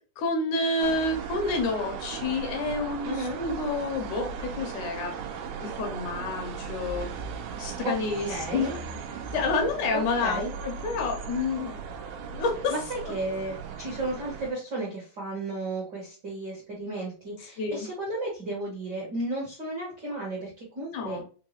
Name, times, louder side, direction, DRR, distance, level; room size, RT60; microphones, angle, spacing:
voice 1, 0.2-5.1 5.6-7.1 7.6-8.7 9.3-11.8 12.3-12.7 17.6-17.9 20.9-21.2, left 3 dB, 75° left, 2 dB, 2.1 m, -29 dB
sound 1, 0.8-14.5, right 6 dB, 80° right, 2.1 m, -37 dB
voice 2, 3.0-3.4 7.8-7.9 8.2-8.7 10.2-10.5 12.7-21.2, right 2 dB, 55° right, -5 dB, 1.2 m, -33 dB
5.4 x 2.2 x 2.9 m, 0.37 s
omnidirectional pair, 3.9 m